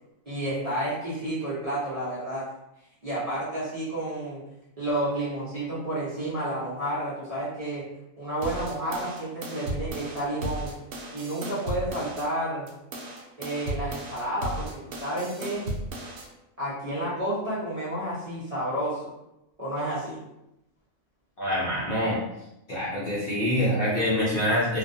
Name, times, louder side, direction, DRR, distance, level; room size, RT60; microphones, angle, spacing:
voice 1, 0.3-2.5 3.0-4.4 4.8-7.8 8.2-10.7 11.1-12.7 13.4-15.7 16.6-19.1 19.6-20.2, right 1 dB, 35° right, -10 dB, 0.6 m, -30 dB
sound 1, 8.4-12.3 12.7-16.3, right 1 dB, 70° right, 0.9 m, -35 dB
voice 2, 21.4-22.2 22.7-24.8, left 1 dB, 55° left, -8 dB, 0.7 m, -25 dB
2.4 x 2.2 x 2.6 m, 0.88 s
omnidirectional pair, 1.4 m